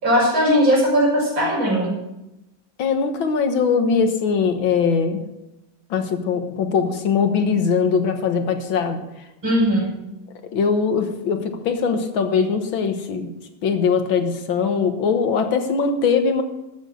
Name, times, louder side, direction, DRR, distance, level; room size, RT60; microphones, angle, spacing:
voice 1, 0.0-1.9 9.4-9.9, equal, 85° right, -4 dB, 6.6 m, -18 dB
voice 2, 2.8-5.3 5.9-9.0 10.5-13.3 13.6-16.4, left 5 dB, 80° left, 6 dB, 2.1 m, -21 dB
13.0 x 7.6 x 6.5 m, 0.91 s
omnidirectional pair, 2.1 m